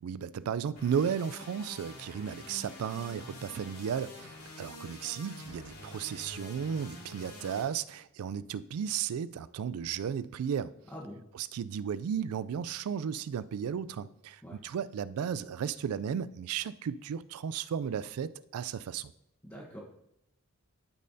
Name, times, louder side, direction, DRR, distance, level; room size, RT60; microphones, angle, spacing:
voice 1, 0.0-10.7 11.3-19.1, right 7 dB, 75° right, 0.3 m, -34 dB
sound 1, 0.8-7.6, left 1 dB, 80° left, 2.9 m, -47 dB
voice 2, 19.4-19.8, equal, 10° left, 1.1 m, -44 dB
12.0 x 5.4 x 2.7 m
head